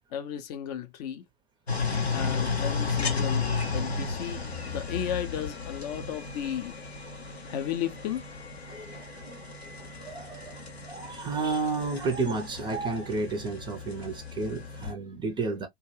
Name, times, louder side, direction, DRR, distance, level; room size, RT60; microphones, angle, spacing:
voice 1, 0.1-1.2 2.1-6.8 7.5-8.2, left 9 dB, 40° left, 0.5 m, -34 dB
sound 1, 1.7-14.9, left 4 dB, 90° left, 0.6 m, -34 dB
voice 2, 8.7-9.4 9.8-15.7, right 3 dB, 15° right, 0.4 m, -32 dB
2.3 x 2.1 x 3.1 m
figure-of-eight pair, 85°, 31 cm